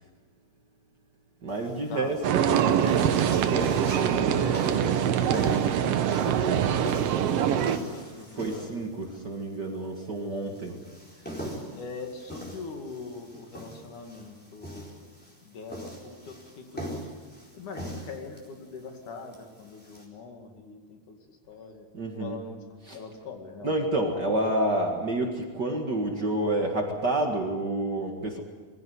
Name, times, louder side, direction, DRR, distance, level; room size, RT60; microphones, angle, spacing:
voice 1, 1.4-2.8 3.4-4.5 5.1-5.6 8.4-10.7 21.9-22.4 22.9-23.0 23.6-28.4, right 1 dB, 40° right, 2 dB, 2.0 m, -29 dB
sound 1, 1.5-20.0, equal, 5° left, 4.1 m, -42 dB
sound 2, 2.2-7.8, right 9 dB, 70° right, 1.6 m, -24 dB
voice 2, 4.2-5.1 5.4-7.4 7.9-8.7 10.4-10.8 11.7-15.2 15.4-17.1 17.5-21.9 22.1-22.6 22.9-23.8, left 4 dB, 70° left, 4 dB, 3.7 m, -42 dB
23.0 x 15.5 x 9.5 m, 1.5 s
omnidirectional pair, 3.7 m